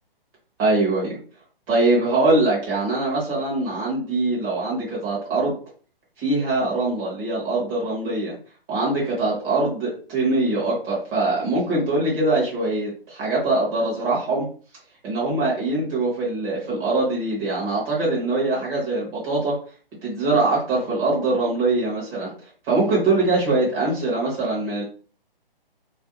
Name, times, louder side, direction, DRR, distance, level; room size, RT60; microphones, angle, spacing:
voice 1, 0.6-1.2 1.7-5.5 6.2-8.4 8.7-14.5 15.0-19.6 20.0-22.3 22.7-24.8, right 2 dB, 15° right, -6 dB, 0.7 m, -22 dB
2.4 x 2.2 x 2.8 m, 0.39 s
figure-of-eight pair, 135°, 29 cm